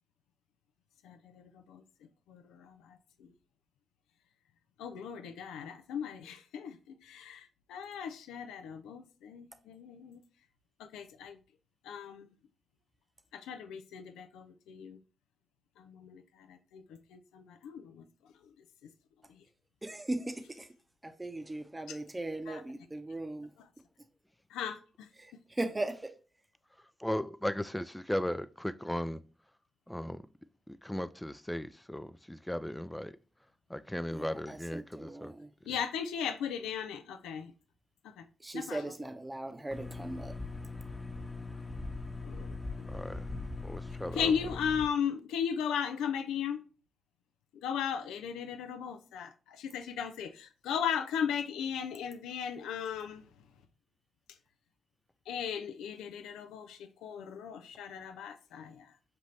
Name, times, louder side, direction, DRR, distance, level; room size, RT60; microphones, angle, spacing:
voice 1, 1.0-1.8 2.3-3.3 4.8-10.2 10.8-11.4 11.8-12.3 13.3-15.0 15.8-16.8 17.1-18.0 19.3-19.4 21.9-22.0 22.5-22.6 24.5-25.1 35.7-37.5 38.0-38.2 38.5-38.9 42.2-42.9 44.1-46.6 47.6-53.2 55.3-58.9, left 7 dB, 85° left, 0.3 m, -37 dB
voice 2, 19.8-20.7 21.0-23.5 25.2-26.1 34.1-35.5 38.4-40.4, right 2 dB, 25° right, 0.7 m, -38 dB
voice 3, 27.0-29.2 29.9-30.2 30.7-33.2 33.7-35.3 42.9-43.3 43.6-44.3, left 1 dB, 10° left, 0.3 m, -36 dB
sound 1, 39.7-44.9, left 3 dB, 25° left, 1.0 m, -40 dB
5.4 x 2.6 x 3.1 m
supercardioid pair, 45°, 0 cm